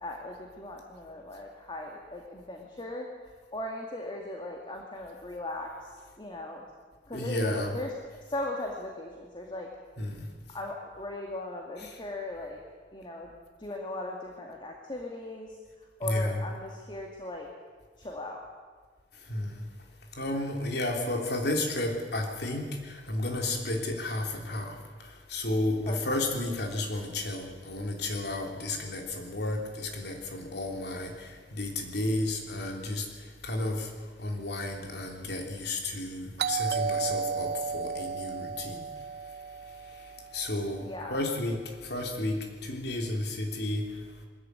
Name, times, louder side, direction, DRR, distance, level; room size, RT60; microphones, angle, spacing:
voice 1, 0.0-3.1 3.5-5.7 6.2-6.6 7.1-7.9 8.3-9.7 10.5-12.6 12.9-13.3 13.6-15.5 16.0-17.5 18.0-18.4 25.9-26.2 40.9-41.2, left 1 dB, 30° left, 1 dB, 2.2 m, -38 dB
voice 2, 7.1-7.7 10.0-10.3 11.8-12.0 16.0-16.4 19.3-19.7 20.2-33.1 33.4-33.9 34.2-38.8 40.3-43.8, left 2 dB, 70° left, 2 dB, 3.3 m, -32 dB
Doorbell, 36.4-41.0, right 6 dB, 65° right, 0.6 m, -34 dB
21.5 x 14.5 x 9.6 m, 1.5 s
head